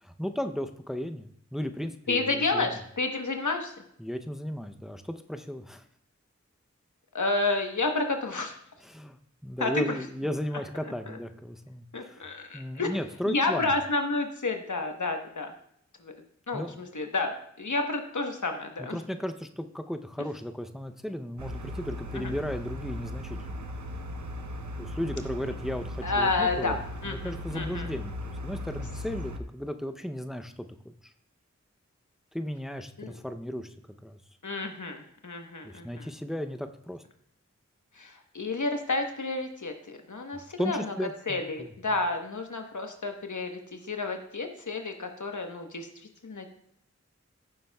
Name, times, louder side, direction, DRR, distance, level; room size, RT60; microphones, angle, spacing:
voice 1, 0.0-2.7 4.0-5.8 8.8-9.2 9.4-12.3 12.5-13.7 16.5-16.8 18.8-23.6 24.8-26.8 27.0-30.9 32.3-33.7 34.0-34.2 35.6-37.0 40.3-41.7, equal, ahead, 7 dB, 0.6 m, -35 dB
voice 2, 2.1-3.7 7.1-8.5 9.6-9.8 11.1-11.2 11.9-12.9 13.3-15.5 16.0-16.1 16.5-19.0 22.1-22.3 26.0-26.8 27.0-27.9 33.0-33.1 34.4-36.1 38.0-40.9 41.3-45.9 46.2-46.5, left 3 dB, 85° left, 4 dB, 1.1 m, -30 dB
sound 1, 21.4-29.4, left 1 dB, 80° right, 0.8 m, -37 dB
14.5 x 7.3 x 2.3 m, 0.69 s
wide cardioid pair, 45°, 29 cm